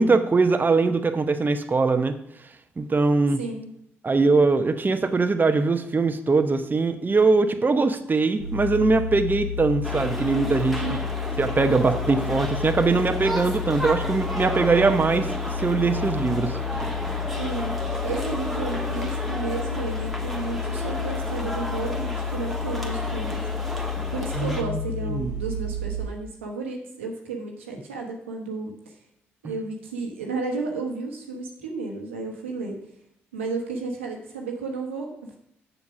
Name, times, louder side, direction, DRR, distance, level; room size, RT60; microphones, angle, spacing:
voice 1, 0.0-2.1 2.8-3.4 4.0-11.0 11.4-16.6 24.3-24.8 25.1-25.3, right 3 dB, 30° right, 8 dB, 0.9 m, -22 dB
voice 2, 3.4-3.7 10.8-11.0 17.4-23.4 24.1-28.9 29.4-32.8 33.3-35.4, right 3 dB, 90° right, 1 dB, 1.2 m, -33 dB
sound 1, 8.4-26.1, left 6 dB, 65° left, 2.9 m, -31 dB
sound 2, 9.8-24.6, equal, ahead, 1.8 m, -33 dB
7.2 x 6.6 x 6.0 m, 0.74 s
hypercardioid pair, 45°, 6 cm